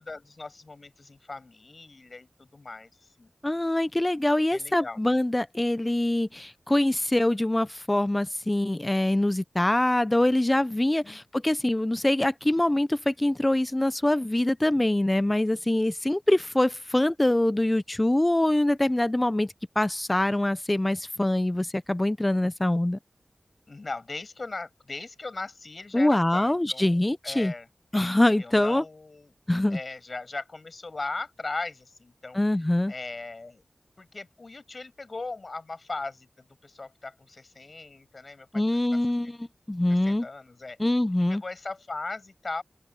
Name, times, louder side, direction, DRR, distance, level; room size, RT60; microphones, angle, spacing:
voice 1, 0.0-3.3 4.5-5.0 11.0-11.2 23.7-27.7 28.4-29.3 29.7-32.4 32.9-33.6 34.0-38.8 39.2-39.3 39.9-40.8 41.1-42.6, left 3 dB, 60° left, 7.7 m, -38 dB
voice 2, 3.4-23.0 25.9-27.5 27.9-28.8 29.5-29.8 32.3-32.9 38.5-40.3 40.8-41.4, left 1 dB, 25° left, 0.6 m, -24 dB
cardioid pair, 40°, 0 cm